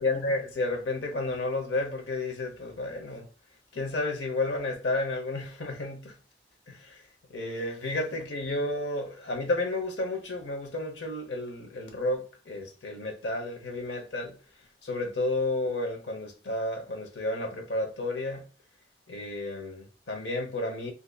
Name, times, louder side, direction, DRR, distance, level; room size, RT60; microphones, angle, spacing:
voice 1, 0.0-3.3 3.7-6.1 6.7-7.0 7.3-14.4 14.8-18.4 19.1-20.9, left 2 dB, 90° left, 0.9 m, -31 dB
3.8 x 2.7 x 2.3 m
head